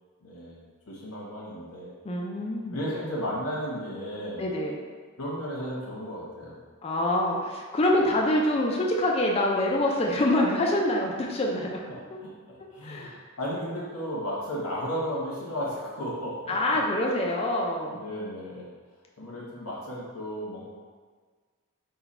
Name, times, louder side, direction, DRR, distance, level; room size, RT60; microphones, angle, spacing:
voice 1, 0.2-1.9 2.7-4.5 5.2-6.6 7.9-8.0 12.2-16.8 17.9-18.7 19.2-20.6, equal, 80° left, -6 dB, 1.1 m, -34 dB
voice 2, 2.0-2.8 4.4-4.8 6.8-11.8 12.1-12.2 12.8-13.2 16.5-18.0, left 1 dB, 25° left, -1 dB, 0.3 m, -25 dB
4.0 x 2.2 x 4.2 m, 1.5 s
head